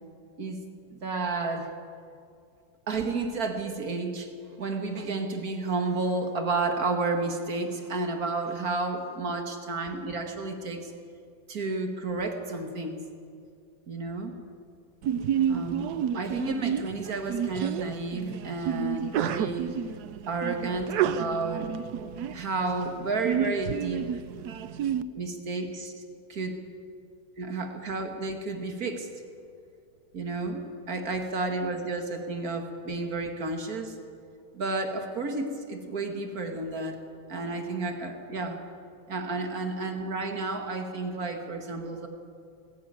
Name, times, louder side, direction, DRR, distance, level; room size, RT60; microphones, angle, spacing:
voice 1, 0.9-1.7 2.9-10.9 11.5-13.0 13.9-14.3 15.5-19.7 20.3-21.7 22.3-24.2 25.2-25.9 26.3-26.6 27.4-29.1 30.1-34.0 34.5-37.0 37.3-38.6 39.1-42.1, right 3 dB, 45° right, 4 dB, 2.3 m, -31 dB
Sneeze, 15.0-25.0, right 8 dB, 65° right, 1.0 m, -30 dB
19.5 x 15.5 x 9.5 m, 2.3 s
omnidirectional pair, 2.3 m